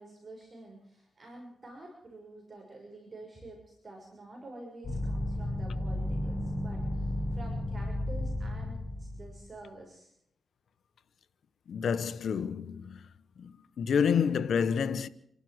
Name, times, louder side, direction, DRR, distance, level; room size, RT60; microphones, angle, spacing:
voice 1, 0.0-10.1, right 2 dB, 35° right, 6.5 m, -49 dB
sound 1, 4.8-9.4, left 1 dB, 50° left, 5.8 m, -33 dB
voice 2, 11.7-13.1 13.4-15.1, left 7 dB, 70° left, 1.1 m, -29 dB
28.5 x 12.5 x 7.9 m
cardioid pair, 90°, 0 cm